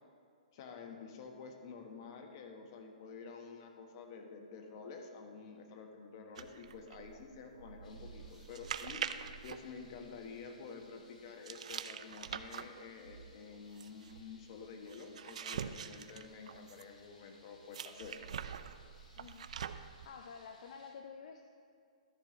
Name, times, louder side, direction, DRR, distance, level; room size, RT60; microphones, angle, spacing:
voice 1, 0.5-18.1, left 5 dB, 30° left, 4 dB, 1.0 m, -50 dB
sound 1, 6.4-10.5 11.5-17.0 17.7-20.1, right 8 dB, 55° right, 0.4 m, -45 dB
sound 2, 7.8-20.9, left 2 dB, 85° left, 2.7 m, -66 dB
voice 2, 19.2-19.5 20.1-21.4, left 6 dB, 50° left, 6 dB, 0.5 m, -50 dB
13.0 x 4.4 x 6.2 m, 2.3 s
hypercardioid pair, 170°, 4 cm